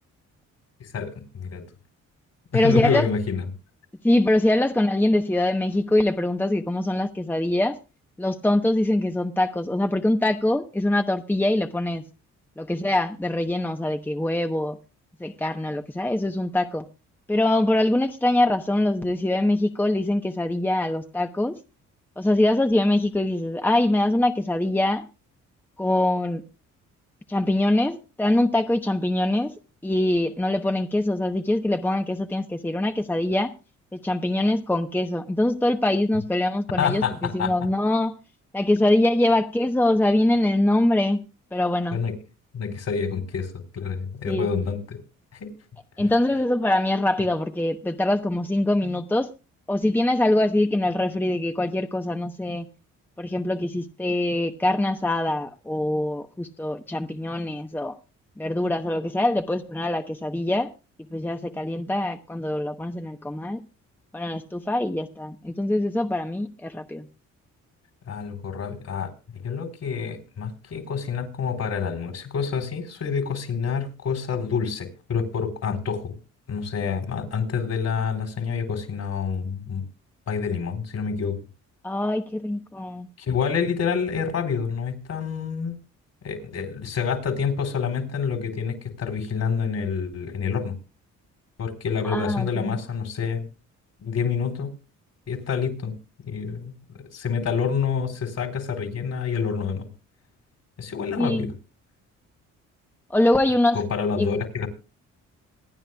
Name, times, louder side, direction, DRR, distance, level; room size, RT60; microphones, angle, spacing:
voice 1, 0.8-1.6 2.5-3.4 36.8-37.5 41.9-42.1 42.5-45.0 45.3-45.5 68.1-76.2 76.5-79.8 80.3-81.4 83.2-85.7 86.2-90.7 91.6-93.5 94.0-94.7 95.3-95.9 96.3-99.9 100.8-101.5 103.7-104.7, left 6 dB, 60° left, 4.0 m, -27 dB
voice 2, 2.5-3.1 4.0-7.8 8.2-12.0 12.6-14.8 15.2-16.9 17.3-21.6 22.2-25.0 25.8-26.4 27.3-29.5 29.8-33.5 33.9-38.2 38.5-41.2 41.5-42.0 44.3-44.5 46.0-49.3 49.7-52.7 53.2-57.9 58.4-60.7 61.1-63.6 64.1-67.1 81.8-83.1 92.0-92.8 101.2-101.5 103.1-103.8 104.2-104.4, left 1 dB, 5° left, 0.9 m, -23 dB
26.5 x 10.0 x 2.3 m
cardioid pair, 90°, 30 cm